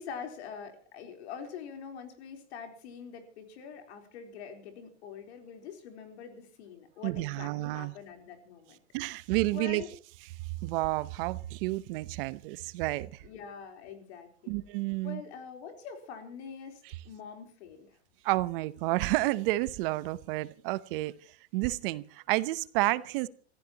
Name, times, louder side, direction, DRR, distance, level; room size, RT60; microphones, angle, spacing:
voice 1, 0.0-8.8 9.5-9.9 13.2-14.6 15.0-18.0, left 7 dB, 70° left, 4.0 m, -44 dB
voice 2, 7.0-7.9 8.9-9.8 10.6-13.2 14.5-15.2 18.2-21.1 21.5-23.3, right 19 dB, 55° right, 0.9 m, -30 dB
28.0 x 15.0 x 2.9 m
supercardioid pair, 135°, 34 cm